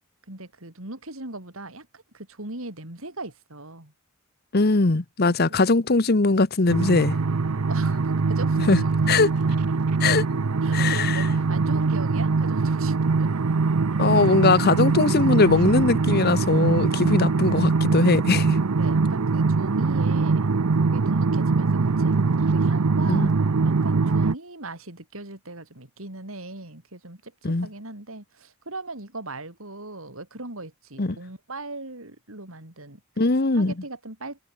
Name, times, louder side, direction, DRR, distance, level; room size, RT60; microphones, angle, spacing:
voice 1, 0.3-3.9 5.2-5.6 7.7-9.2 10.6-13.3 14.3-14.4 16.9-17.7 18.7-20.5 20.8-22.1 22.5-23.4 23.6-33.3 33.5-34.4, right 2 dB, 65° right, 4.3 m, -39 dB
voice 2, 4.5-7.2 8.7-9.3 10.0-10.2 10.7-11.2 14.0-18.6 23.1-23.3 27.4-27.7 31.0-31.2 33.2-33.7, left 3 dB, 45° left, 0.9 m, -21 dB
sound 1, 6.7-24.3, right 4 dB, 85° right, 0.7 m, -22 dB
head